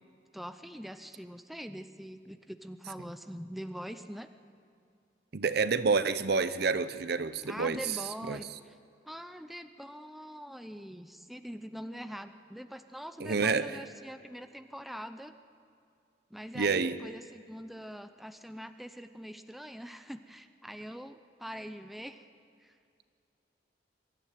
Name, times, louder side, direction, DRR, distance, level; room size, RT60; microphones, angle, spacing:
voice 1, 0.3-4.3 7.5-8.8 9.0-15.3 16.3-22.2 22.6-22.7, equal, ahead, 9 dB, 0.6 m, -43 dB
voice 2, 5.3-7.8 8.3-8.4 13.2-13.8 16.5-17.0, right 4 dB, 60° right, 13 dB, 0.7 m, -28 dB
23.0 x 12.5 x 9.2 m, 2.4 s
head